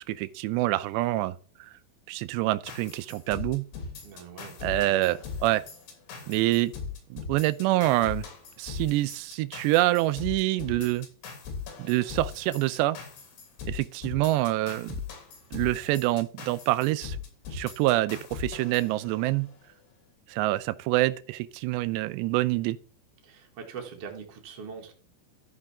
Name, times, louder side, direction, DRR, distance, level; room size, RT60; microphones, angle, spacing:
voice 1, 0.1-1.7 2.1-3.6 4.6-5.6 6.3-6.7 7.1-8.3 8.6-11.1 11.8-13.0 13.7-15.0 15.5-17.2 17.5-19.5 20.3-22.8, right 17 dB, 80° right, 2.7 m, -26 dB
sound 1, 2.7-19.5, left 5 dB, 80° left, 5.4 m, -40 dB
voice 2, 4.0-5.0 6.1-6.4 23.2-24.9, right 6 dB, 55° right, 1.7 m, -43 dB
13.5 x 5.7 x 3.6 m
omnidirectional pair, 5.3 m